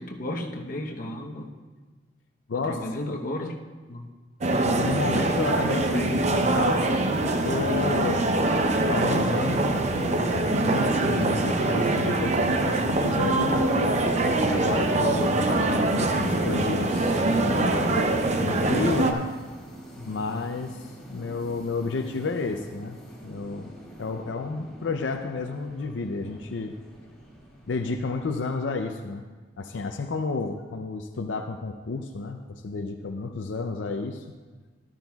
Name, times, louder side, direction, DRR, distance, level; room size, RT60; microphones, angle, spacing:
voice 1, 0.0-1.5 2.6-3.6 3.9-4.1 14.6-15.0 20.0-20.3, left 1 dB, 50° left, 1 dB, 1.0 m, -34 dB
voice 2, 2.5-2.8 4.6-8.3 8.9-13.7 14.5-19.3 20.1-23.0 23.2-23.7 24.0-26.8 27.7-29.2 29.6-34.4, left 3 dB, 85° left, 5 dB, 0.5 m, -31 dB
sound 1, 4.4-19.1, right 2 dB, 40° right, 0.6 m, -24 dB
sound 2, 10.4-28.9, equal, 5° left, 2.2 m, -43 dB
13.0 x 12.0 x 2.4 m, 1.4 s
head